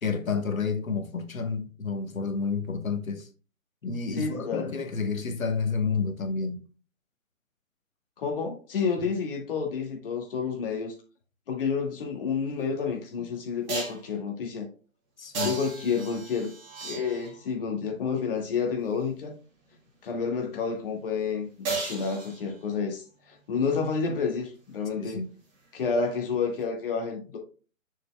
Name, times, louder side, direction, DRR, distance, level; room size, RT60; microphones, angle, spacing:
voice 1, 0.0-3.3 3.8-6.6 13.2-13.3 15.2-15.5 25.0-25.3, left 5 dB, 80° left, 1.3 m, -30 dB
voice 2, 4.2-4.7 8.2-10.9 11.5-14.7 15.4-16.5 16.8-19.4 20.0-25.2 25.7-27.4, left 5 dB, 40° left, 2.2 m, -30 dB
sound 1, 12.6-12.7 13.7-14.1 15.3-17.5 21.7-22.8 26.6-26.7, right 4 dB, 20° right, 3.0 m, -35 dB
6.6 x 6.5 x 2.3 m
figure-of-eight pair, 145°, 41 cm